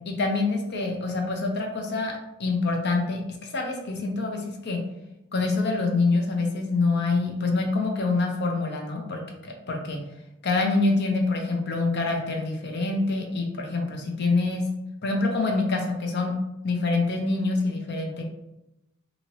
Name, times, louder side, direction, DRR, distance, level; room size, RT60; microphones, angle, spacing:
voice 1, 0.1-2.1 2.4-4.8 5.3-10.0 10.4-14.6 15.0-16.3 16.6-18.2, left 3 dB, 55° left, 2 dB, 0.6 m, -26 dB
2.8 x 2.8 x 2.9 m, 0.92 s
head